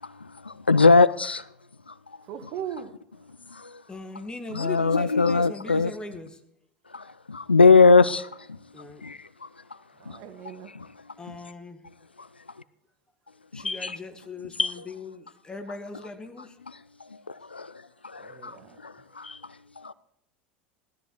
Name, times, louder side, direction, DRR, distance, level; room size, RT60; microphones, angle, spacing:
voice 1, 0.4-1.4 1.9-2.0 3.5-3.7 4.5-5.9 6.9-8.3 9.0-9.5 10.1-10.2 10.7-10.9 13.5-14.0 14.6-14.7 17.3-17.7 18.0-18.6 18.8-19.4 19.8-19.9, left 4 dB, 85° left, 0.4 m, -21 dB
voice 2, 2.3-2.9 10.0-10.7 18.2-18.8, right 9 dB, 50° right, 1.3 m, -38 dB
voice 3, 3.9-6.4 8.7-9.0 11.2-11.8 13.5-16.6, left 3 dB, 15° left, 1.7 m, -39 dB
18.0 x 13.0 x 3.1 m
figure-of-eight pair, 75°, 6 cm